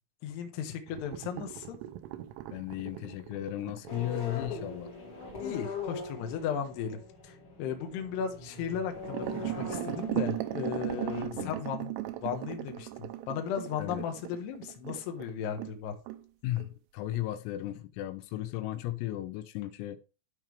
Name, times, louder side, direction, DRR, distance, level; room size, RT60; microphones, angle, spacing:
voice 1, 0.2-1.8 5.4-11.9 12.2-15.9, left 8 dB, 65° left, 3.0 m, -36 dB
sound 1, 0.9-5.5 8.9-15.8 16.1-16.2 16.6-16.7 17.1-17.2, right 15 dB, 80° right, 3.3 m, -38 dB
voice 2, 2.5-4.9 11.3-11.6 13.8-14.0 16.4-20.0, left 14 dB, 85° left, 3.5 m, -35 dB
sound 2, 3.9-11.2, left 3 dB, 35° left, 2.2 m, -41 dB
12.5 x 5.8 x 3.3 m
omnidirectional pair, 5.9 m